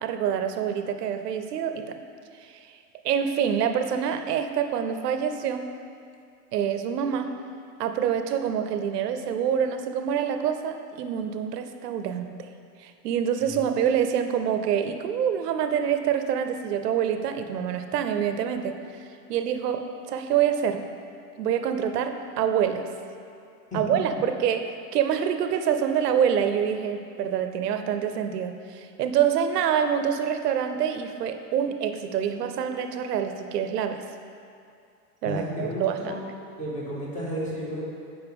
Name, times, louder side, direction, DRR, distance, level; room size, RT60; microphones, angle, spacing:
voice 1, 0.0-2.0 2.4-2.6 3.0-5.6 6.5-7.3 7.8-12.4 12.8-18.8 19.3-19.8 20.1-20.8 21.4-22.9 23.7-24.6 24.9-34.0 35.2-36.2, right 8 dB, 85° right, 7 dB, 0.7 m, -26 dB
voice 2, 35.2-36.2 36.6-37.9, equal, 15° left, -6 dB, 1.8 m, -32 dB
7.8 x 5.4 x 3.5 m, 2.4 s
supercardioid pair, 130°, 47 cm